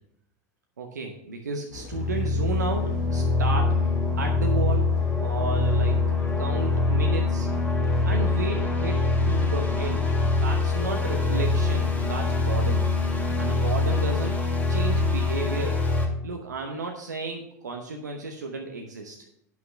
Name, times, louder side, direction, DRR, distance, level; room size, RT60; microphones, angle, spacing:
voice 1, 0.8-3.8 4.2-4.9 5.2-6.1 6.4-7.5 8.1-9.0 9.3-10.0 10.4-12.9 13.4-14.4 14.7-15.8 16.2-19.2, right 3 dB, 90° right, 3 dB, 0.9 m, -33 dB
sound 1, 1.7-13.6, left 3 dB, 80° left, 2.0 m, -42 dB
sound 2, 1.9-16.1, left 3 dB, 15° left, 2.5 m, -24 dB
sound 3, 7.8-11.1, left 3 dB, 50° left, 2.3 m, -42 dB
9.4 x 5.9 x 5.7 m, 0.76 s
hypercardioid pair, 85°, 9 cm